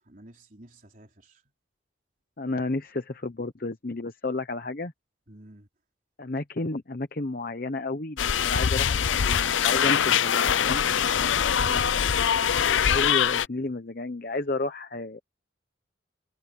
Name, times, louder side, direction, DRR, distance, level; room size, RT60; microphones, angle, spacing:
voice 1, 0.0-1.4 5.3-5.7 11.1-12.1 13.5-13.7, right 1 dB, 45° right, 4.3 m, -50 dB
voice 2, 2.4-4.9 6.2-10.8 12.9-15.2, left 2 dB, 45° left, 0.9 m, -31 dB
sound 1, 8.2-13.5, left 8 dB, 80° left, 0.6 m, -23 dB
head